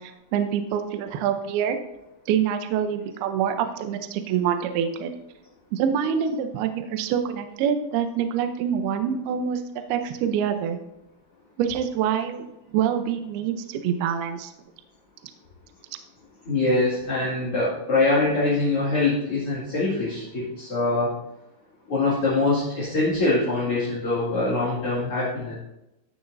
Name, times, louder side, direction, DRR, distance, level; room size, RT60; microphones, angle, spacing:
voice 1, 0.0-1.8 2.3-5.1 5.7-9.6 9.9-10.8 11.6-12.5 12.7-14.5, right 8 dB, 85° right, 7 dB, 2.2 m, -25 dB
voice 2, 16.5-21.2 21.9-25.5, left 2 dB, 40° left, -9 dB, 2.3 m, -23 dB
15.0 x 7.2 x 2.6 m, 0.89 s
omnidirectional pair, 5.6 m